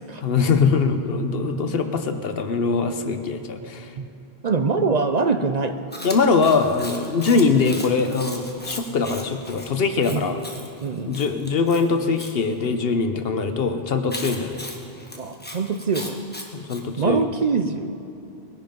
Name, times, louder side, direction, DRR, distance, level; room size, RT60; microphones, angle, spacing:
voice 1, 0.2-3.9 6.0-10.4 11.1-14.6 16.5-17.2, left 4 dB, 70° left, 8 dB, 1.1 m, -22 dB
voice 2, 4.4-5.8 10.1-10.3 10.8-11.2 15.2-16.3 17.0-18.0, right 4 dB, 50° right, 8 dB, 0.6 m, -24 dB
Chewing mastication, 5.9-12.3 14.1-16.8, left 1 dB, 10° left, 1.3 m, -37 dB
20.5 x 10.5 x 5.3 m, 2.8 s
omnidirectional pair, 1.0 m